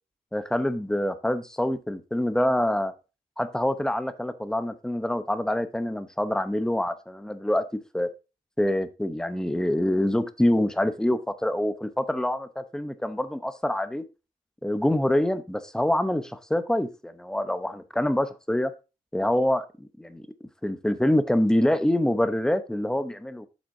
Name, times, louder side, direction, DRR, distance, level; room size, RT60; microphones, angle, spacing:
voice 1, 0.3-2.9 3.4-7.6 7.9-8.1 8.6-14.0 14.6-18.7 19.1-20.3 20.6-23.5, left 1 dB, 5° left, 11 dB, 0.8 m, -25 dB
8.6 x 7.6 x 2.7 m, 0.29 s
wide cardioid pair, 135°, 15 cm